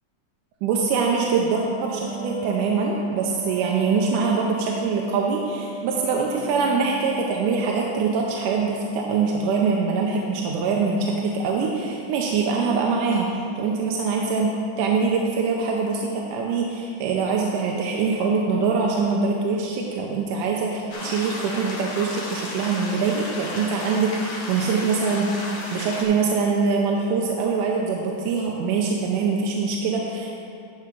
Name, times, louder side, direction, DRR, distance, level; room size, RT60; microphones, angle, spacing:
voice 1, 0.6-14.5 14.8-25.3 25.7-30.5, right 4 dB, 85° right, -1 dB, 2.2 m, -23 dB
Wind instrument woodwind instrument, 1.5-8.0, right 6 dB, 70° right, 2.1 m, -36 dB
sound 1, 20.9-26.0, left 2 dB, 65° left, 2.3 m, -34 dB
11.0 x 4.7 x 6.1 m, 2.5 s
omnidirectional pair, 3.6 m